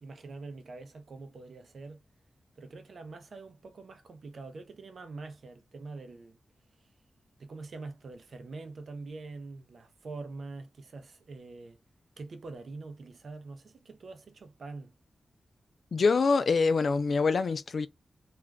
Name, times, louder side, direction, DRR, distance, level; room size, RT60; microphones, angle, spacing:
voice 1, 0.0-2.0 2.6-6.4 7.4-11.8 12.2-14.9, right 3 dB, 65° right, 0.6 m, -44 dB
voice 2, 15.9-17.9, left 4 dB, 65° left, 0.3 m, -25 dB
2.4 x 2.2 x 3.4 m
cardioid pair, 60°, 0 cm